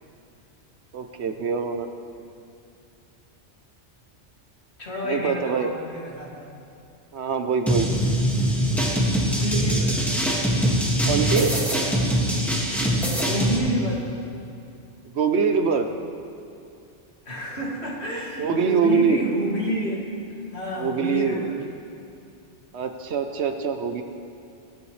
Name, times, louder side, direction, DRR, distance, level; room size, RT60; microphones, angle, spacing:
voice 1, 0.9-1.9 5.0-5.7 7.1-7.9 11.0-11.6 15.1-15.9 18.4-19.2 20.8-21.4 22.7-24.0, right 5 dB, 65° right, 6 dB, 1.0 m, -24 dB
voice 2, 4.8-6.6 9.4-10.1 13.3-14.1 17.3-21.7, equal, 60° left, -4 dB, 2.6 m, -29 dB
sound 1, 7.7-13.6, equal, ahead, 1.9 m, -22 dB
23.0 x 9.8 x 3.3 m, 2.6 s
omnidirectional pair, 1.2 m